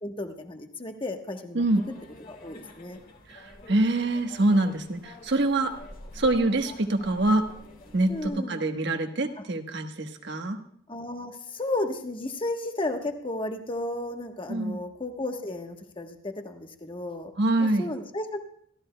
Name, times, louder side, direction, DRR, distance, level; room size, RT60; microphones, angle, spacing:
voice 1, 0.0-1.6 2.3-3.0 8.1-8.6 10.9-17.3 17.6-18.4, left 2 dB, 25° left, 4 dB, 1.1 m, -33 dB
voice 2, 1.5-1.9 3.3-5.7 6.1-7.5 7.9-10.6 14.5-14.8 17.4-17.9, right 2 dB, 65° right, 5 dB, 1.2 m, -25 dB
sound 1, 1.6-8.3, left 1 dB, 45° left, 1.9 m, -47 dB
25.5 x 13.5 x 2.2 m, 0.65 s
head